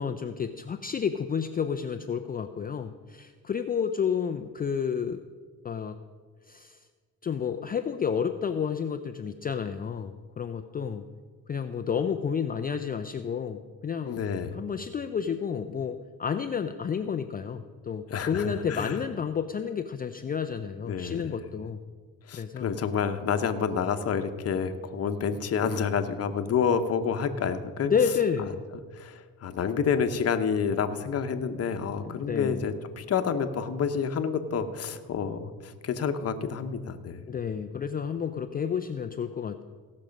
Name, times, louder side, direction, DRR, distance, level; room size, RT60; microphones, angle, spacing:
voice 1, 0.0-5.2 5.6-6.0 6.5-6.8 7.2-11.0 11.5-14.2 14.5-21.8 22.3-22.7 27.8-28.6 32.0-32.7 37.3-39.6, left 7 dB, 25° left, 7 dB, 0.4 m, -30 dB
voice 2, 14.1-14.5 18.1-18.9 20.8-21.3 22.3-27.9 28.9-37.2, left 6 dB, 40° left, 8 dB, 0.9 m, -29 dB
17.0 x 6.3 x 5.2 m, 1.5 s
cardioid pair, 100°, 37 cm